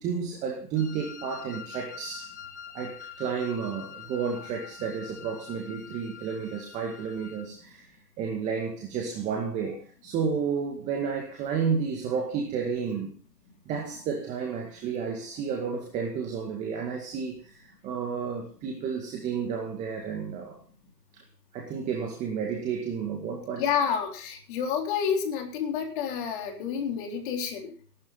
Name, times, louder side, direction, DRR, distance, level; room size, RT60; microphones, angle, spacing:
voice 1, 0.0-2.3 2.7-7.9 8.2-13.1 13.7-20.6 21.1-21.2 21.5-23.6, right 6 dB, 15° right, 1 dB, 2.0 m, -31 dB
Wind instrument woodwind instrument, 0.8-7.5, left 7 dB, 10° left, 0.6 m, -45 dB
voice 2, 23.6-27.7, left 7 dB, 30° left, 2 dB, 3.9 m, -29 dB
18.0 x 12.0 x 4.0 m, 0.39 s
hypercardioid pair, 145°, 48 cm